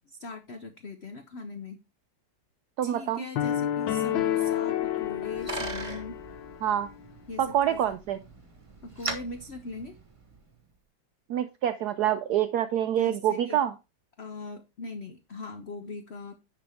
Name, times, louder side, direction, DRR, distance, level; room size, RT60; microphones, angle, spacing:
voice 1, 0.1-1.8 2.8-6.2 7.3-7.8 8.8-10.0 13.0-13.6 14.2-16.4, left 3 dB, 55° left, 8 dB, 0.7 m, -40 dB
voice 2, 2.8-3.3 6.6-6.9 7.4-8.2 11.3-13.7, right 10 dB, 70° right, 11 dB, 1.0 m, -26 dB
sound 1, 3.4-6.6, left 11 dB, 75° left, 1.4 m, -29 dB
Bicycle, 4.8-10.5, right 2 dB, 20° right, 1.2 m, -40 dB
10.0 x 5.9 x 3.4 m, 0.27 s
omnidirectional pair, 2.1 m